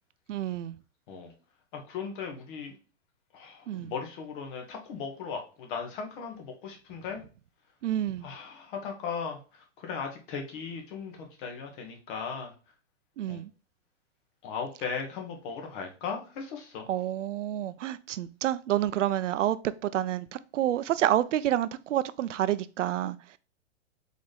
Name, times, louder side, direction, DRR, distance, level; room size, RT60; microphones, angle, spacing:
voice 1, 0.3-0.8 3.7-3.9 7.8-8.3 13.2-13.5 16.9-19.6 19.8-23.2, right 12 dB, 85° right, 0.5 m, -28 dB
voice 2, 1.7-2.8 3.3-7.2 8.2-12.5 13.2-13.4 14.4-16.8, left 6 dB, 45° left, 1.4 m, -37 dB
4.2 x 3.8 x 3.3 m
hypercardioid pair, 140°, 36 cm